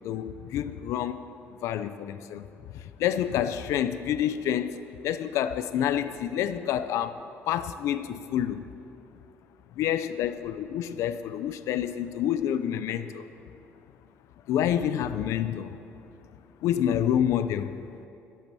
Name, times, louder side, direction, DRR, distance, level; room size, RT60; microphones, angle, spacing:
voice 1, 0.0-1.2 1.6-2.5 2.7-7.2 7.5-8.6 9.8-13.2 14.5-15.8 16.6-17.7, left 10 dB, 75° left, 12 dB, 0.5 m, -28 dB
13.0 x 8.6 x 6.9 m, 2.8 s
cardioid pair, 165°, 5 cm